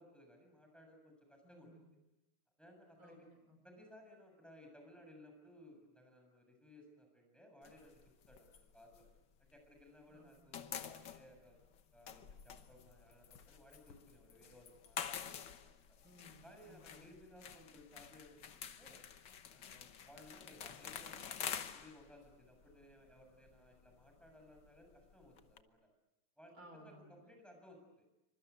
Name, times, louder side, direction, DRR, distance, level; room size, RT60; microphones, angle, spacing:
voice 1, 0.0-1.8 2.6-3.3 3.6-8.0 8.3-9.1 9.4-11.6 11.9-16.0 16.4-19.0 19.5-25.8 26.4-26.5 26.8-28.1, left 1 dB, ahead, 3 dB, 7.3 m, -60 dB
voice 2, 1.4-1.9 3.0-3.6 10.1-10.5 16.0-17.1 26.5-27.2, equal, 70° right, 5 dB, 5.7 m, -60 dB
sound 1, 7.6-9.9 10.2-25.6, left 8 dB, 60° left, 1.7 m, -49 dB
27.5 x 25.5 x 8.4 m, 0.94 s
omnidirectional pair, 2.3 m